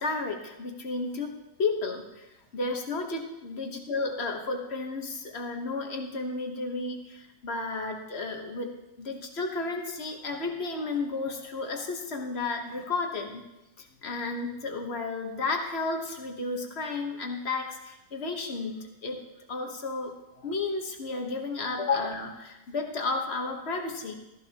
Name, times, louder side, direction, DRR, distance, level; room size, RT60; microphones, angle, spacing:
voice 1, 0.0-2.3 2.5-13.4 13.8-19.2 19.5-20.1 20.4-24.1, left 3 dB, 40° left, 3 dB, 1.3 m, -32 dB
14.5 x 14.0 x 2.9 m, 1.0 s
omnidirectional pair, 1.9 m